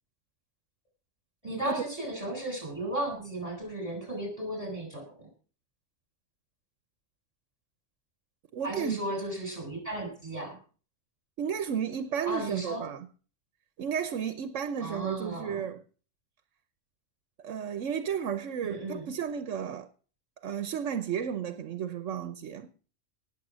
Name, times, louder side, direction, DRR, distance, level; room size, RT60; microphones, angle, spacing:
voice 1, 1.4-5.1 8.6-10.6 12.3-12.8 14.8-15.6 18.6-19.1, right 1 dB, 30° right, 7.7 m, -35 dB
voice 2, 8.5-9.0 11.4-13.1 13.8-15.8 17.4-19.9 20.4-22.7, right 8 dB, 80° right, 1.2 m, -33 dB
18.5 x 7.4 x 6.2 m
omnidirectional pair, 1.3 m